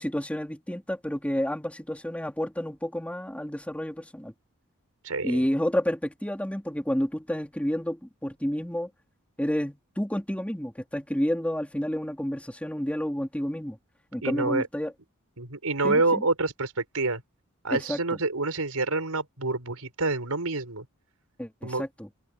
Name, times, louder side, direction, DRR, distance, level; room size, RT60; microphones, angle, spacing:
voice 1, 0.0-4.3 5.2-8.9 9.4-13.8 14.1-14.9 15.8-16.2 17.7-18.0 21.4-22.1, equal, 5° left, 3.4 m, -30 dB
voice 2, 5.0-5.4 14.2-14.7 15.4-17.2 17.6-20.8 21.6-21.8, right 3 dB, 85° right, 4.9 m, -27 dB
head